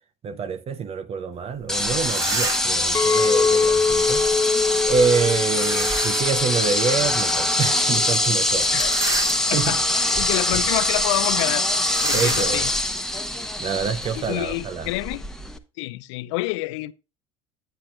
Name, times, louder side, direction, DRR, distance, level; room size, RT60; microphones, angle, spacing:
voice 1, 0.2-4.3 4.9-8.7 9.4-9.8 12.1-12.7 13.6-14.9, right 5 dB, 40° right, 0.9 m, -26 dB
sound 1, 1.6-1.7 2.0-2.8 5.5-6.4 6.9-7.0 8.7-9.8 10.4-10.6 10.8-11.0 11.8-14.3, right 3 dB, 20° right, 1.6 m, -30 dB
sound 2, 1.7-15.6, left 1 dB, 5° left, 1.2 m, -24 dB
Chink clink, 2.9-8.1, left 5 dB, 20° left, 0.4 m, -24 dB
voice 2, 8.7-11.7 12.0-12.7 14.2-15.2 15.8-16.9, left 21 dB, 70° left, 0.6 m, -28 dB
11.5 x 8.6 x 2.5 m
hypercardioid pair, 70°, 16 cm